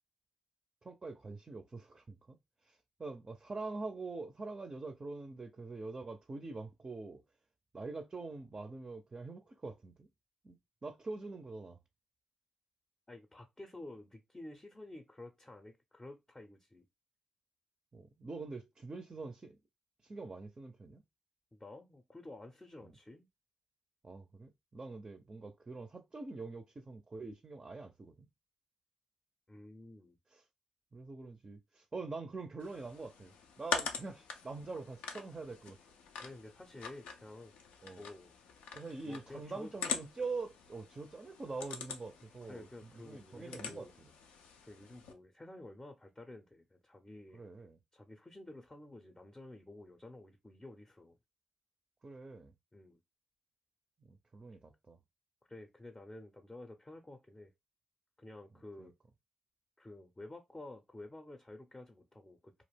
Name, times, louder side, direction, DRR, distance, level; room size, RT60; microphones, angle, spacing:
voice 1, 0.8-2.4 2.7-7.2 7.7-10.1 10.4-10.6 10.8-11.8 17.9-19.6 20.0-21.0 22.8-22.9 24.0-28.3 30.3-30.4 30.9-35.8 37.8-38.1 38.8-42.7 42.9-43.9 47.3-47.8 52.0-52.5 54.0-55.0 58.8-58.9, right 3 dB, 35° right, 0.4 m, -44 dB
voice 2, 13.1-16.9 21.5-23.3 29.5-30.2 36.2-37.5 37.9-38.3 39.0-39.7 42.5-43.9 44.6-47.5 47.9-51.2 52.7-53.0 55.5-57.5 58.2-58.9 59.8-62.6, left 2 dB, 20° left, 0.5 m, -51 dB
sound 1, 32.6-45.1, left 6 dB, 80° left, 0.4 m, -44 dB
2.4 x 2.0 x 3.3 m
hypercardioid pair, 40°, 2 cm